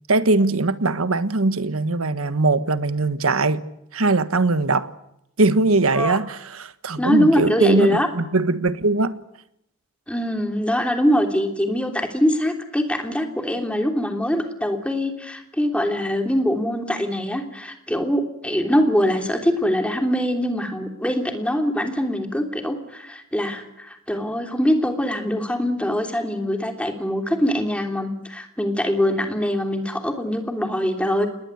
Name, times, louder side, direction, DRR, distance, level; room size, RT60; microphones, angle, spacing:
voice 1, 0.1-3.6 3.9-4.9 5.4-9.2, right 2 dB, 85° right, 1.3 m, -21 dB
voice 2, 7.0-8.1 10.1-31.3, equal, 5° left, 3.1 m, -23 dB
27.0 x 20.5 x 8.1 m
head